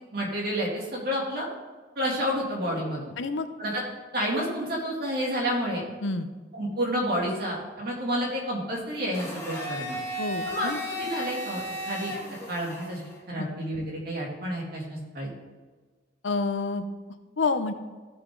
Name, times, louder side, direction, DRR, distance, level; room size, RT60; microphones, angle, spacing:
voice 1, 0.1-1.5 2.0-3.0 3.6-3.8 4.1-5.8 6.5-10.0 10.5-10.7 11.0-12.1 12.5-13.0 13.3-15.3, equal, 55° right, -3 dB, 2.8 m, -29 dB
voice 2, 3.2-3.5 6.0-6.3 10.2-10.8 13.4-13.5 16.2-16.9 17.4-17.7, left 3 dB, 90° left, 10 dB, 0.7 m, -28 dB
Domestic sounds home sounds, 9.1-13.2, equal, 15° left, 1.7 m, -35 dB
14.5 x 6.0 x 3.9 m, 1.3 s
head